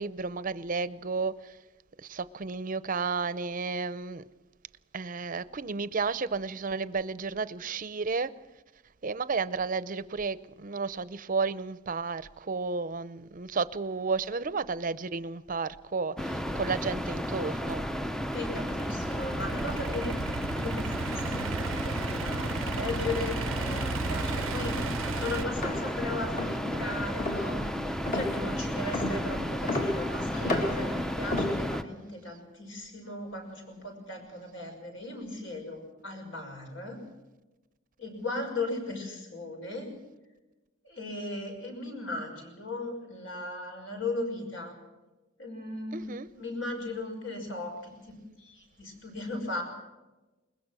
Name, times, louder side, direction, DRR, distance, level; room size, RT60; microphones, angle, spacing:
voice 1, 0.0-1.6 2.0-4.2 4.9-8.3 9.0-17.8 45.9-46.3, right 4 dB, 40° right, 0.6 m, -32 dB
sound 1, 16.2-31.8, equal, 5° left, 0.6 m, -33 dB
voice 2, 18.3-20.1 20.5-37.0 38.0-39.9 40.8-44.7 45.4-46.0 46.3-48.1 48.4-49.6, left 2 dB, 70° left, 6.2 m, -37 dB
Idling / Accelerating revving vroom, 18.3-25.4, right 5 dB, 80° right, 0.6 m, -35 dB
Synthesized Footsteps, 25.6-32.0, left 2 dB, 40° left, 2.3 m, -33 dB
21.5 x 20.5 x 6.2 m
head